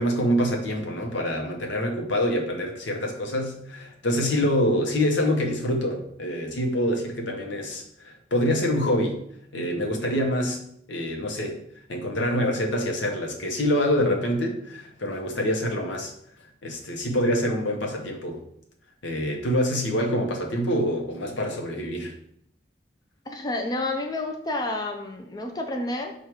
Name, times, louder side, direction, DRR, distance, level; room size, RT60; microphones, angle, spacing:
voice 1, 0.0-9.2 9.5-10.6 10.9-11.6 11.9-16.1 16.6-18.4 19.0-22.1, equal, 90° left, 1 dB, 0.8 m, -26 dB
voice 2, 23.3-26.1, left 2 dB, 20° left, 2 dB, 0.4 m, -30 dB
4.4 x 2.4 x 4.7 m, 0.70 s
head